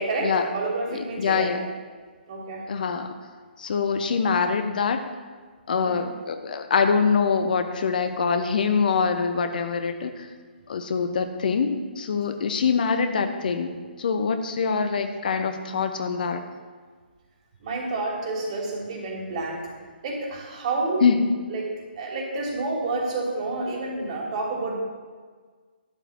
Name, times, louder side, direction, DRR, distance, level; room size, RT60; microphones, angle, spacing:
voice 1, 0.0-1.6 2.3-2.6 5.7-6.0 17.6-19.6 20.0-21.0 21.5-24.7, right 2 dB, 40° right, -2 dB, 3.1 m, -29 dB
voice 2, 0.9-1.7 2.7-3.1 3.6-5.1 5.7-10.3 10.7-16.5 21.0-21.3, left 5 dB, 50° left, 8 dB, 0.8 m, -24 dB
12.0 x 5.0 x 7.8 m, 1.5 s
figure-of-eight pair, 135°, 6 cm